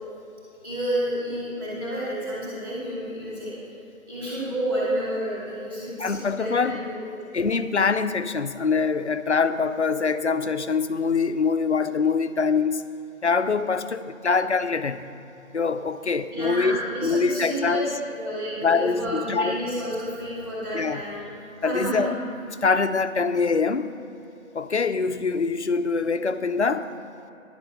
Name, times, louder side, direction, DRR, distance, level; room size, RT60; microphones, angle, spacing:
voice 1, 0.6-3.5 4.1-7.0 16.3-21.3 21.6-22.1, equal, 15° right, -9 dB, 2.5 m, -30 dB
voice 2, 6.0-6.8 7.3-12.8 13.2-15.1 15.5-17.9 18.6-19.6 20.7-21.0 21.6-22.1 22.6-23.9 24.5-26.9, left 4 dB, 55° left, 11 dB, 0.5 m, -24 dB
10.5 x 7.9 x 5.8 m, 2.9 s
figure-of-eight pair, 170°, 41 cm